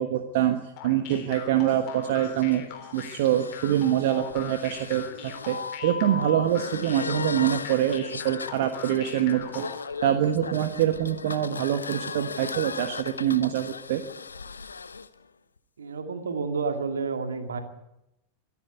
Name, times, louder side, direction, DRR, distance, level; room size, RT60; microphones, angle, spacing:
voice 1, 0.0-2.6 2.9-9.7 10.0-14.0, right 11 dB, 50° right, 7 dB, 1.4 m, -25 dB
sound 1, 0.8-9.9, left 9 dB, 45° left, 3.6 m, -42 dB
sound 2, 1.4-15.1, left 5 dB, 75° left, 0.9 m, -37 dB
voice 2, 15.8-17.6, right 4 dB, 70° right, 7 dB, 2.4 m, -30 dB
24.0 x 11.0 x 9.6 m, 0.88 s
figure-of-eight pair, 90°, 0 cm